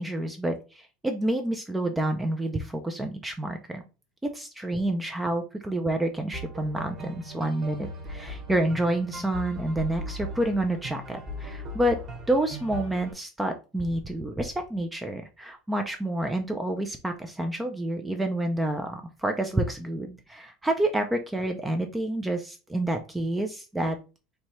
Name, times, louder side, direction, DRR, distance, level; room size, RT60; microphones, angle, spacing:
voice 1, 0.0-3.8 4.2-12.0 12.3-24.0, right 1 dB, 5° right, 5 dB, 0.3 m, -28 dB
sound 1, 6.3-13.1, right 1 dB, 30° right, 1.1 m, -38 dB
4.3 x 2.7 x 3.0 m, 0.32 s
cardioid pair, 170°, 0 cm